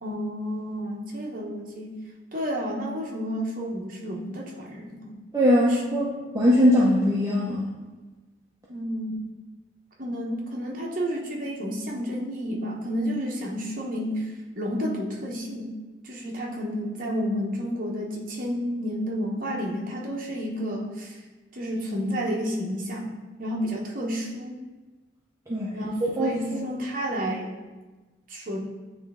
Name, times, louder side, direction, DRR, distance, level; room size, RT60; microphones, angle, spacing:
voice 1, 0.0-1.9 2.3-5.2 5.7-5.8 8.7-9.3 10.0-15.7 16.0-21.2 21.5-23.1 23.4-24.5 25.7-27.6 28.3-28.6, equal, 45° right, -2 dB, 1.0 m, -31 dB
voice 2, 5.3-6.1 6.3-7.7 25.5-25.7 26.2-26.6, equal, 15° right, -7 dB, 0.7 m, -21 dB
9.2 x 3.1 x 3.6 m, 1.2 s
head